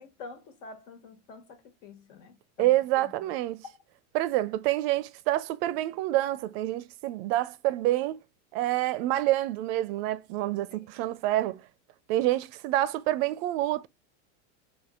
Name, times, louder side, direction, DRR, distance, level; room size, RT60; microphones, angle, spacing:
voice 1, 0.0-2.7 3.0-3.3 10.7-10.9, left 4 dB, 70° left, 1.6 m, -48 dB
voice 2, 2.6-3.6 4.1-8.2 8.5-11.6 12.1-13.9, right 15 dB, 50° right, 0.5 m, -27 dB
4.4 x 2.7 x 3.6 m
supercardioid pair, 125°, 41 cm